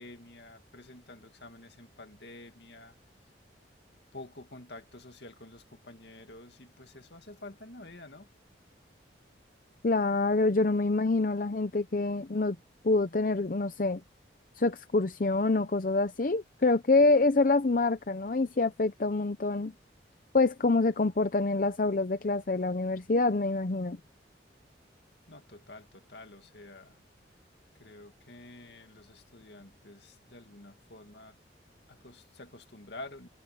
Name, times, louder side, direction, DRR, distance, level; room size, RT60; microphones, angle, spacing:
voice 1, 0.0-2.9 4.1-8.3 25.3-27.0 27.8-31.4 31.9-33.3, left 2 dB, 65° left, 2.2 m, -49 dB
voice 2, 9.8-12.6 12.8-14.0 14.6-19.7 20.3-24.0, left 3 dB, 45° left, 0.6 m, -26 dB
head